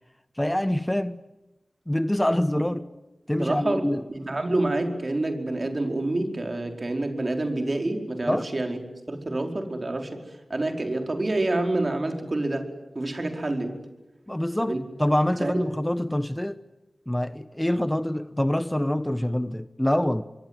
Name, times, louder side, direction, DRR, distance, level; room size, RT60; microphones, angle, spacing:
voice 1, 0.4-1.2 1.9-2.8 3.3-4.0 8.3-8.5 14.3-16.6 17.1-20.2, left 1 dB, 15° left, 1.0 m, -25 dB
voice 2, 3.4-8.8 9.1-10.2 10.5-12.7 12.9-13.8 14.6-14.8 15.4-15.6, right 2 dB, 45° right, 4.8 m, -27 dB
26.0 x 23.0 x 9.7 m
wide cardioid pair, 50°, 0 cm